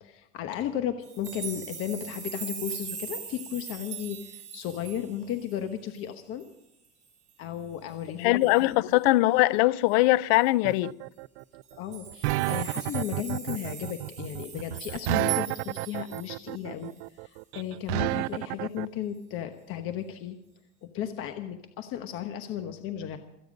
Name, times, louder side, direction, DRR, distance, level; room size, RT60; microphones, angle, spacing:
voice 1, 0.0-6.5 7.4-8.8 11.8-16.9 17.2-20.4 20.8-23.2, left 10 dB, 40° left, 1.1 m, -35 dB
sound 1, 1.0-5.6 6.0-6.1 6.4-6.5 6.8-7.3 8.4-8.6 10.3-10.4 10.7-10.8 11.6-16.5 17.0-17.1, right 8 dB, 20° right, 4.5 m, -40 dB
voice 2, 8.2-11.0, left 18 dB, 75° left, 0.6 m, -22 dB
sound 2, 10.7-18.9, right 19 dB, 85° right, 0.5 m, -30 dB
27.5 x 9.3 x 5.2 m
cardioid pair, 170°, 32 cm